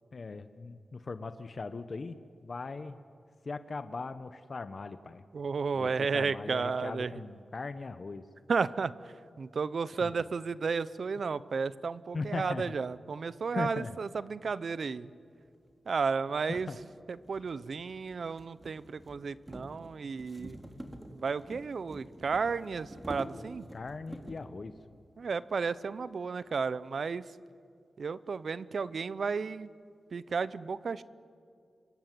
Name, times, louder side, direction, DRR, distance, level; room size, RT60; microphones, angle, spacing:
voice 1, 0.1-3.0 3.4-5.2 5.7-8.3 10.0-10.1 12.1-12.7 13.5-14.0 16.5-16.8 23.7-24.8, left 3 dB, 55° left, 10 dB, 1.0 m, -39 dB
voice 2, 5.3-7.1 8.5-15.1 15.9-16.7 17.3-20.6 21.1-23.7 25.2-27.2 28.0-29.7 30.1-31.0, right 5 dB, 65° right, 16 dB, 0.8 m, -33 dB
sound 1, 15.7-15.8 16.5-24.5, equal, 15° right, 3.1 m, -47 dB
26.5 x 22.5 x 9.4 m, 2.3 s
cardioid pair, 60°, 0 cm